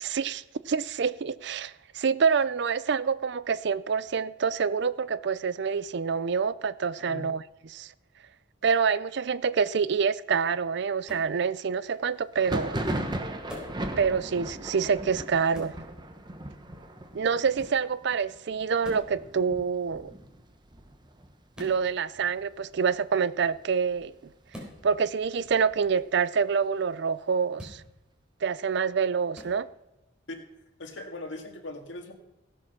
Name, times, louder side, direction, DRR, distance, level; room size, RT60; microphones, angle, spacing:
voice 1, 0.0-7.9 8.6-12.8 14.0-15.7 17.1-20.1 21.6-24.1 24.8-27.8 28.4-29.7, right 6 dB, 65° right, 0.5 m, -27 dB
sound 1, 11.0-11.3 13.5-13.8 15.5-15.8 17.5-17.8 18.8-19.1 21.5-21.8 24.5-24.8 27.5-27.8 29.3-29.5, left 1 dB, 5° right, 4.2 m, -43 dB
Thunder, 12.3-21.8 22.1-22.8 23.0-24.0 24.4-26.1, right 1 dB, 25° right, 1.1 m, -38 dB
voice 2, 30.8-32.1, left 2 dB, 80° left, 2.0 m, -39 dB
16.5 x 8.8 x 6.0 m
head